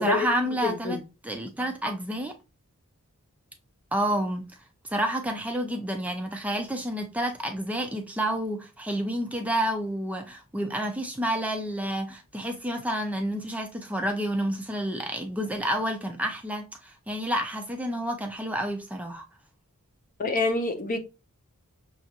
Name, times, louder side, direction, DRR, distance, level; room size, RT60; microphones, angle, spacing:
voice 1, 0.0-2.4 3.9-4.5 4.8-19.2, right 1 dB, 5° right, 0.4 m, -29 dB
voice 2, 0.6-1.0 20.2-21.0, left 3 dB, 40° left, 0.6 m, -26 dB
6.0 x 2.4 x 2.7 m
head